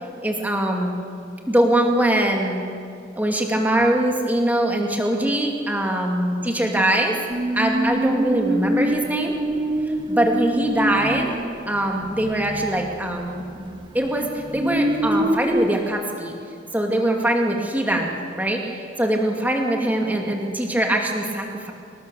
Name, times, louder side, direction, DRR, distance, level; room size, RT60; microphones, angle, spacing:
voice 1, 0.2-0.9 1.5-2.7 3.2-7.2 7.5-9.3 10.1-11.3 11.7-16.3 16.7-21.7, right 1 dB, 10° right, 1 dB, 2.4 m, -22 dB
sound 1, 7.3-13.5 13.8-15.8, right 1 dB, 25° right, 0.8 m, -25 dB
25.5 x 19.0 x 7.1 m, 2.4 s
head